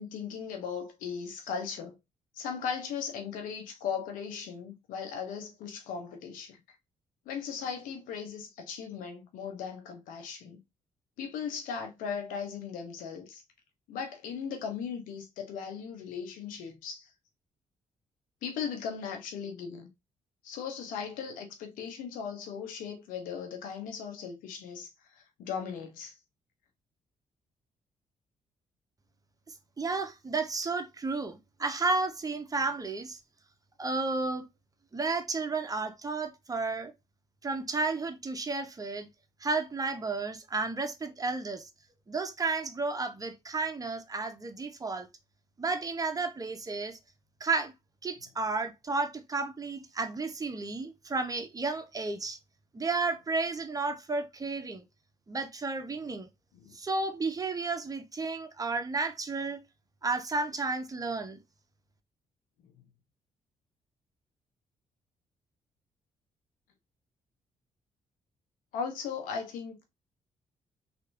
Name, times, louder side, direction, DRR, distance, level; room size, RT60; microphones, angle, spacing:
voice 1, 0.0-2.0 2.3-6.6 7.3-10.6 11.2-13.4 13.9-17.1 18.4-19.9 20.4-24.9 25.2-26.1 56.6-56.7 68.7-69.8, left 6 dB, 80° left, 0.9 m, -38 dB
voice 2, 29.8-33.2 33.8-34.5 34.9-36.9 37.4-39.1 39.4-41.7 42.1-45.1 45.6-47.0 47.4-47.7 48.0-52.4 52.7-54.8 55.3-56.3 56.7-59.6 60.0-61.4, right 3 dB, 25° right, 0.8 m, -32 dB
3.2 x 2.9 x 2.6 m
supercardioid pair, 55°, 14 cm